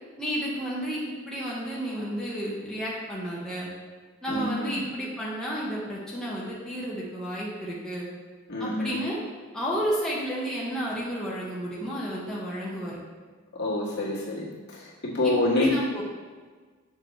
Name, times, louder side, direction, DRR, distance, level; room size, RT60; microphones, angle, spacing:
voice 1, 0.2-3.7 4.2-8.1 8.6-9.2 9.5-13.0 15.2-16.0, equal, 5° left, -7 dB, 1.2 m, -31 dB
voice 2, 4.3-4.8 8.5-9.0 13.6-15.7, left 2 dB, 55° left, -6 dB, 2.0 m, -27 dB
7.4 x 6.6 x 3.2 m, 1.5 s
head